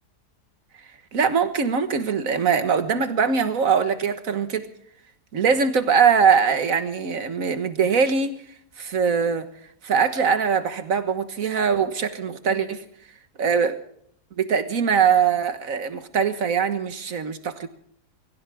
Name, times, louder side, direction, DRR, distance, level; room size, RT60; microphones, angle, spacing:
voice 1, 1.1-4.7 5.3-8.3 8.8-9.5 9.8-12.8 13.4-13.8 14.4-17.7, right 6 dB, 55° right, 10 dB, 1.8 m, -22 dB
23.0 x 15.5 x 3.5 m, 0.65 s
omnidirectional pair, 1.8 m